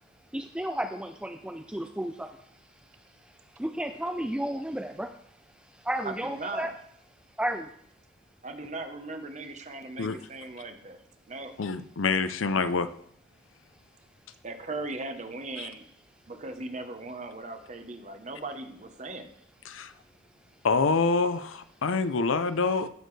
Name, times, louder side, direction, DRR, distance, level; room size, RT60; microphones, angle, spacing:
voice 1, 0.3-2.3 3.6-5.1 5.8-6.7 7.4-7.7, right 1 dB, 5° right, 5 dB, 0.4 m, -32 dB
voice 2, 6.0-6.7 8.4-11.0 11.3-11.5 14.4-15.8 16.3-19.3, right 2 dB, 35° right, 6 dB, 1.0 m, -38 dB
voice 3, 11.6-12.9 15.6-15.7 19.7-19.9 20.6-22.9, left 4 dB, 85° left, 12 dB, 0.6 m, -26 dB
15.5 x 6.7 x 3.3 m, 0.67 s
head